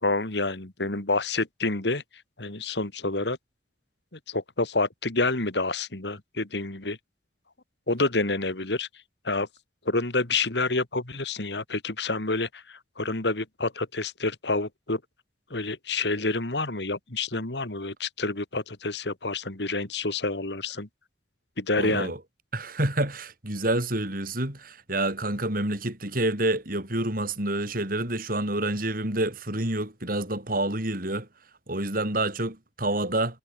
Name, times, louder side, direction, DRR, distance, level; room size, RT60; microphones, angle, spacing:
voice 1, 0.0-2.0 2.4-3.4 4.3-7.0 7.9-8.9 9.2-9.5 9.9-15.0 15.5-20.9 21.6-22.1, left 3 dB, 75° left, 2.5 m, -28 dB
voice 2, 21.8-22.2 22.5-31.3 31.7-33.4, right 1 dB, 55° right, 7.9 m, -28 dB
head